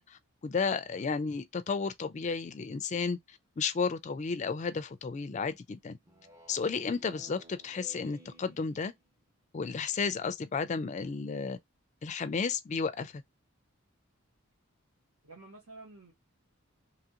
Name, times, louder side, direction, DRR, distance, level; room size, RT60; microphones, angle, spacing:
voice 1, 0.0-3.2 3.6-6.0 6.5-8.9 9.5-11.6 12.0-13.2, left 5 dB, 35° left, 0.3 m, -33 dB
Speech synthesizer, 6.1-9.1, equal, 15° right, 0.5 m, -56 dB
voice 2, 15.2-16.1, right 3 dB, 80° right, 1.2 m, -51 dB
2.9 x 2.4 x 2.8 m
head